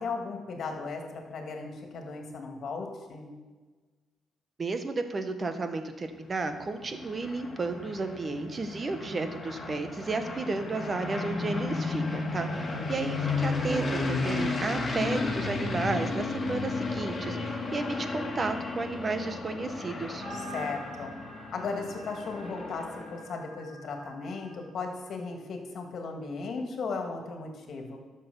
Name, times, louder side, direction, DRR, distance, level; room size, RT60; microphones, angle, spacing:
voice 1, 0.0-3.3 12.5-12.9 20.3-21.1 21.5-28.0, left 4 dB, 60° left, 3 dB, 2.2 m, -36 dB
voice 2, 4.6-20.2, right 3 dB, 35° right, 8 dB, 1.3 m, -33 dB
sound 1, 6.2-23.3, left 3 dB, 30° left, 2.3 m, -34 dB
sound 2, 20.2-24.7, right 2 dB, 75° right, 3.8 m, -47 dB
12.0 x 6.8 x 7.0 m, 1.4 s
cardioid pair, 90°, 0 cm